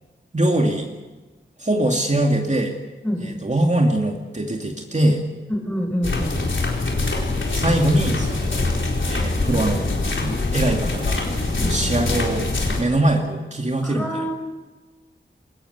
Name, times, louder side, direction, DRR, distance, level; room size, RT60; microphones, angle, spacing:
voice 1, 0.3-0.9 1.6-2.7 3.2-5.2 7.5-8.7 9.1-9.9 10.2-11.3 11.6-12.4 12.8-14.3, right 1 dB, 40° right, 1 dB, 2.5 m, -22 dB
voice 2, 5.5-6.4 11.5-11.7 13.8-14.3, equal, 10° left, 5 dB, 5.0 m, -26 dB
sound 1, 6.0-12.8, left 2 dB, 90° left, 4.1 m, -23 dB
21.5 x 18.5 x 8.2 m, 1.2 s
wide cardioid pair, 70°, 19 cm